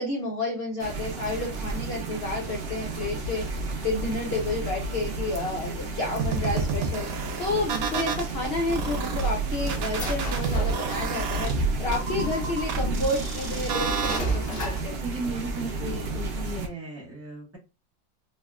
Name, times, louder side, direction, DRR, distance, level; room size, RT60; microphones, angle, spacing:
voice 1, 0.0-15.0, left 2 dB, 75° left, 0 dB, 0.5 m, -31 dB
sound 1, 0.8-16.7, right 2 dB, 90° right, 0.5 m, -32 dB
sound 2, 6.2-8.3 8.7-14.2, right 5 dB, 70° right, 0.9 m, -29 dB
sound 3, 9.3-11.4 12.2-12.3 13.0-15.0, right 1 dB, 45° left, 0.8 m, -35 dB
voice 2, 14.9-17.6, right 2 dB, 15° right, -3 dB, 0.6 m, -36 dB
3.4 x 2.1 x 2.3 m, 0.29 s
omnidirectional pair, 1.9 m